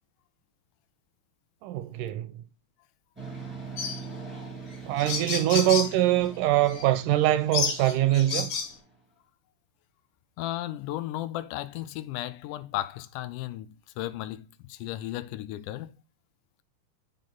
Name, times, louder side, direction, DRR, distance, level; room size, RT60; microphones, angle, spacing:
voice 1, 1.6-2.3 4.9-8.5, right 13 dB, 85° right, 2.1 m, -23 dB
sound 1, 3.2-8.9, right 5 dB, 5° right, 1.0 m, -43 dB
sound 2, 3.8-4.0 4.7-4.8 5.0-5.9 6.7-6.8 7.5-8.7, left 6 dB, 55° left, 2.4 m, -30 dB
voice 2, 10.4-15.9, left 14 dB, 80° left, 2.0 m, -35 dB
10.0 x 3.6 x 3.8 m
omnidirectional pair, 3.8 m